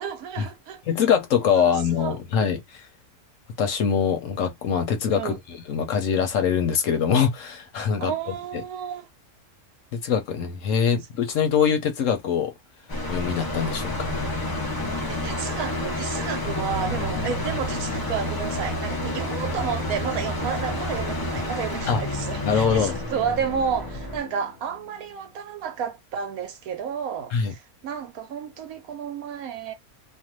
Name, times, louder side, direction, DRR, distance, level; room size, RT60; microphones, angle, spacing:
voice 1, 0.0-0.8 1.6-2.2 5.1-5.4 8.0-9.1 15.1-29.7, right 7 dB, 75° right, 1.1 m, -31 dB
voice 2, 0.9-2.9 3.6-5.3 5.7-8.1 9.9-12.5 13.1-13.9 21.9-22.0 22.4-23.0 27.3-27.5, left 7 dB, 65° left, 1.0 m, -23 dB
sound 1, 12.9-24.2, left 1 dB, 30° left, 0.4 m, -30 dB
sound 2, 13.8-25.5, left 2 dB, 85° left, 1.1 m, -38 dB
2.6 x 2.5 x 2.9 m
omnidirectional pair, 1.6 m